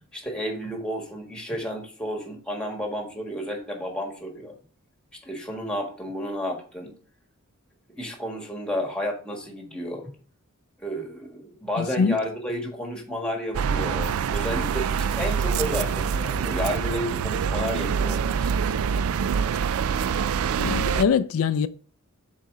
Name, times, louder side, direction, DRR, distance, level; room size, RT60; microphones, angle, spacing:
voice 1, 0.1-4.5 5.2-6.9 7.9-10.1 10.8-18.5, equal, 5° left, 1.5 m, -31 dB
voice 2, 11.8-12.2 20.6-21.7, left 6 dB, 80° left, 0.4 m, -23 dB
sound 1, 13.5-21.0, right 6 dB, 80° right, 0.4 m, -25 dB
7.2 x 4.2 x 3.7 m
head